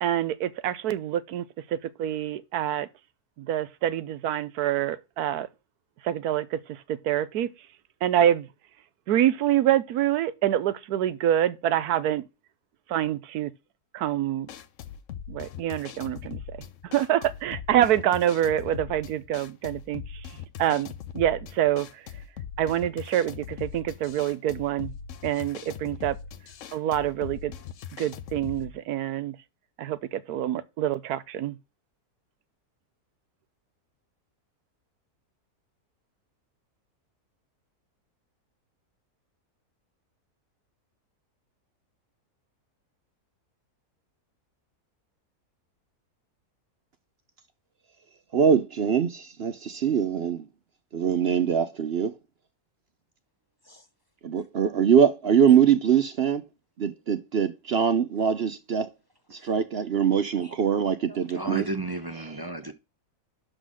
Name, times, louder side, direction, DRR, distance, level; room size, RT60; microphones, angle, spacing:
voice 1, 0.0-2.9 3.4-5.5 6.0-7.5 8.0-8.5 9.1-12.2 12.9-13.5 13.9-14.5 15.3-16.6 16.8-20.3 20.6-22.0 22.6-24.9 25.2-26.2 26.7-27.5 28.0-29.4 29.8-31.6, right 11 dB, 75° right, 1.2 m, -26 dB
sound 1, 14.4-28.7, left 8 dB, 60° left, 1.0 m, -40 dB
voice 2, 48.3-50.4 50.9-52.1 54.2-56.4 56.8-58.9 59.4-61.7, right 8 dB, 55° right, 0.7 m, -23 dB
voice 3, 60.4-62.7, right 2 dB, 35° right, 0.3 m, -35 dB
11.5 x 3.9 x 6.3 m
omnidirectional pair, 1.7 m